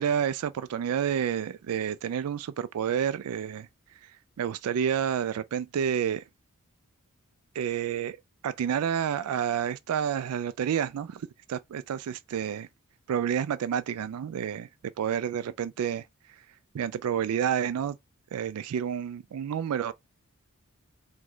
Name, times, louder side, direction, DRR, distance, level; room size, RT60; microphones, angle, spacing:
voice 1, 0.0-3.7 4.0-4.1 4.4-6.2 7.5-8.2 8.4-12.7 13.1-14.7 15.0-16.1 16.7-18.0 18.3-19.9, right 8 dB, 80° right, 0.3 m, -29 dB
4.9 x 2.2 x 3.8 m
head